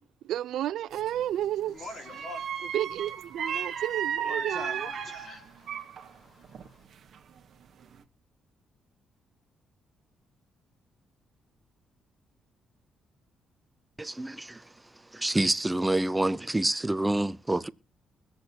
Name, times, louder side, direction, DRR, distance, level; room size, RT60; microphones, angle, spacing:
voice 1, 0.2-1.8 2.7-4.9, right 12 dB, 75° right, 0.5 m, -31 dB
sound 1, 0.9-1.2 2.1-6.1 6.4-7.4 7.8-8.0, right 7 dB, 50° right, 1.1 m, -35 dB
voice 2, 1.7-2.7 4.2-6.8, left 2 dB, 40° left, 1.9 m, -45 dB
voice 3, 14.0-14.6 15.1-17.7, right 1 dB, 10° right, 0.5 m, -27 dB
23.0 x 7.9 x 2.8 m
cardioid pair, 150°, 0 cm